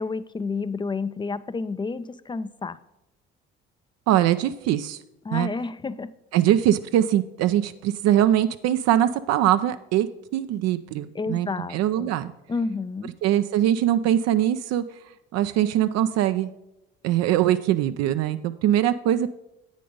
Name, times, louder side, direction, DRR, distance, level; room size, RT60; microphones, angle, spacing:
voice 1, 0.0-2.8 5.2-6.1 11.1-12.1 12.5-13.1, left 4 dB, 15° left, 16 dB, 0.4 m, -30 dB
voice 2, 4.1-5.0 5.3-5.5 6.3-10.1 10.3-12.3 13.2-14.8 15.3-16.5 17.0-19.3, right 12 dB, 60° right, 11 dB, 0.4 m, -22 dB
8.4 x 5.1 x 5.3 m, 0.89 s
hypercardioid pair, 55°, 30 cm